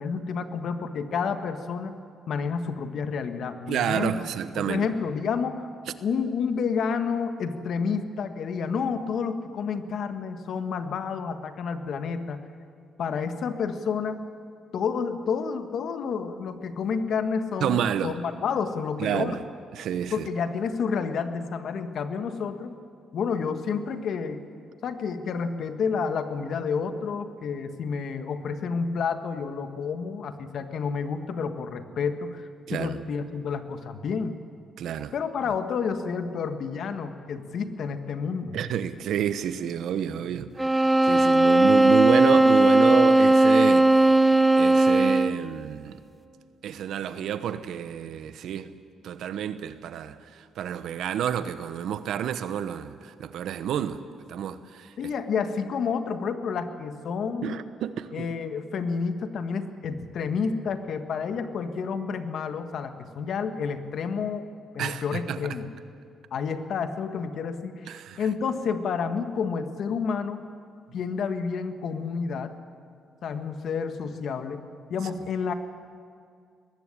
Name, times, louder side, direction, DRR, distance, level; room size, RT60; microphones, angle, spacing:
voice 1, 0.0-2.0 2.3-4.2 4.6-5.7 6.0-12.4 13.0-14.2 14.7-19.4 20.1-22.7 23.1-24.4 24.8-32.4 32.7-34.3 35.1-38.6 55.0-57.6 58.1-64.5 64.7-65.7 66.3-70.4 70.9-72.5 73.2-74.6 74.9-75.5, left 5 dB, 65° left, 1.5 m, -30 dB
voice 2, 3.7-4.9 17.6-18.1 19.0-19.4 19.7-20.3 32.7-33.0 34.8-35.1 38.5-46.0 46.6-48.7 49.0-54.0 54.3-54.9 57.4-58.3 64.8-65.4 67.9-68.2, right 9 dB, 75° right, 1.0 m, -30 dB
sound 1, 40.6-45.5, right 2 dB, 10° right, 0.9 m, -18 dB
20.0 x 15.5 x 10.0 m
cardioid pair, 90°, 0 cm